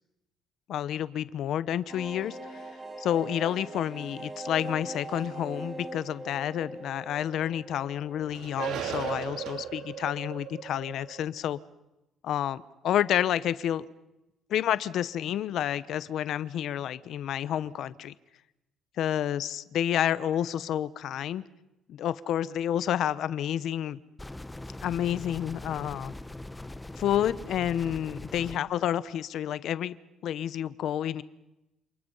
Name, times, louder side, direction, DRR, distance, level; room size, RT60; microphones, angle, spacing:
voice 1, 0.7-2.7 3.0-11.6 12.2-13.9 14.5-18.1 19.0-21.4 21.9-24.0 24.8-26.1 27.0-30.0 30.2-31.2, left 10 dB, 60° left, 16 dB, 0.9 m, -29 dB
sound 1, 1.9-9.3 9.6-9.7 10.0-10.1, right 2 dB, 15° right, 5.0 m, -42 dB
sound 2, 5.7-7.1 7.4-7.5 8.2-11.3, right 9 dB, 70° right, 3.2 m, -37 dB
sound 3, 24.2-28.6, left 2 dB, 5° left, 0.9 m, -41 dB
29.0 x 28.0 x 5.6 m, 0.93 s
cardioid pair, 145°, 0 cm